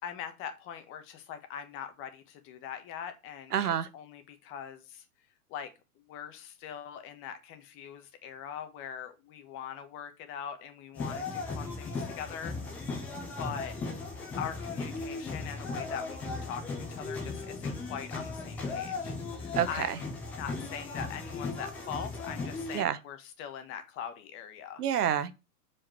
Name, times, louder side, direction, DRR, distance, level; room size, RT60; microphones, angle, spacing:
voice 1, 0.0-5.0 5.5-12.8 13.4-13.8 14.4-20.1 20.3-24.8, left 8 dB, 30° left, 1.4 m, -42 dB
voice 2, 3.5-3.9 19.6-19.9 22.7-23.0 24.8-25.3, right 9 dB, 80° right, 1.2 m, -28 dB
sound 1, 11.0-22.8, left 3 dB, 5° left, 0.4 m, -37 dB
7.5 x 4.9 x 4.5 m
hypercardioid pair, 145°, 46 cm